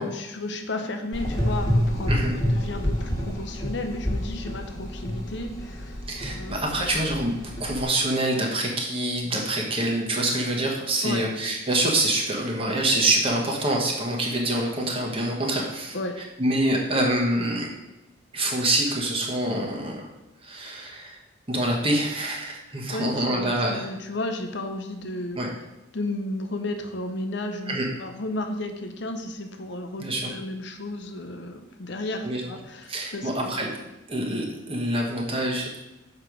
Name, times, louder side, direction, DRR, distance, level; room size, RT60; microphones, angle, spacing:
voice 1, 0.0-7.0 11.0-11.2 15.9-16.2 22.9-25.4 25.9-33.7, left 2 dB, 55° left, 6 dB, 0.7 m, -33 dB
Gurgling / Engine, 1.1-7.8, equal, 15° left, 1.7 m, -28 dB
voice 2, 6.1-16.0 16.4-17.7 18.3-20.1 20.4-21.2 21.5-23.9 25.3-25.5 27.7-27.9 30.0-30.3 32.2-32.4 32.9-33.7 34.1-35.7, right 1 dB, 25° right, 0 dB, 1.2 m, -26 dB
6.8 x 4.7 x 5.0 m, 0.97 s
head